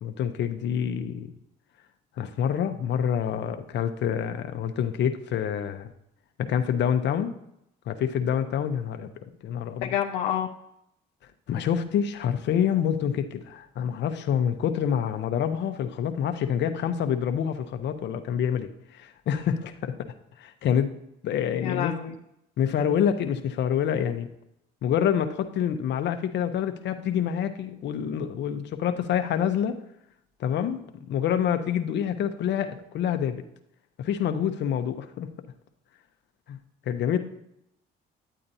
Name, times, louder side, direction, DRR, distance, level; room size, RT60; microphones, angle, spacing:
voice 1, 0.0-1.3 2.2-5.9 6.4-7.4 7.9-9.9 11.5-19.9 20.4-20.9 21.2-21.9 22.6-24.3 24.8-29.8 30.4-30.8 31.1-33.4 34.0-35.3 36.5-36.6 36.9-37.2, left 8 dB, 60° left, 8 dB, 0.9 m, -27 dB
voice 2, 9.8-10.5 21.6-22.1, left 10 dB, 85° left, 2 dB, 0.6 m, -28 dB
10.0 x 8.7 x 2.7 m, 0.79 s
supercardioid pair, 75°, 20 cm